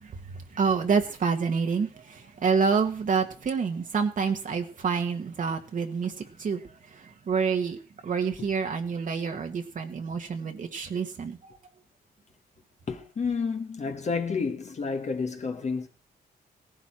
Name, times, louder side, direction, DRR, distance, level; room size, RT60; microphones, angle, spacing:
voice 1, 0.0-6.1 6.4-6.6 6.9-11.5, right 5 dB, 55° right, 1.5 m, -28 dB
voice 2, 12.9-15.9, left 5 dB, 45° left, 1.4 m, -30 dB
17.0 x 11.0 x 4.4 m
cardioid pair, 85°, 16 cm